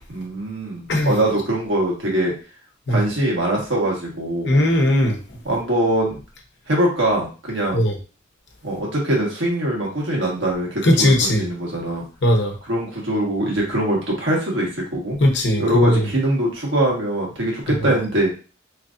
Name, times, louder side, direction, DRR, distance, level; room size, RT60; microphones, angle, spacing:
voice 1, 0.1-2.3 2.9-4.5 5.4-6.1 6.7-7.8 8.6-12.0 12.7-15.2 15.6-18.4, right 1 dB, 80° right, -3 dB, 1.5 m, -22 dB
voice 2, 4.4-5.4 7.7-8.0 10.8-11.4 12.2-12.5 15.2-16.1 17.8-17.9, left 1 dB, 60° left, 2 dB, 0.8 m, -18 dB
3.2 x 2.5 x 3.7 m, 0.35 s
head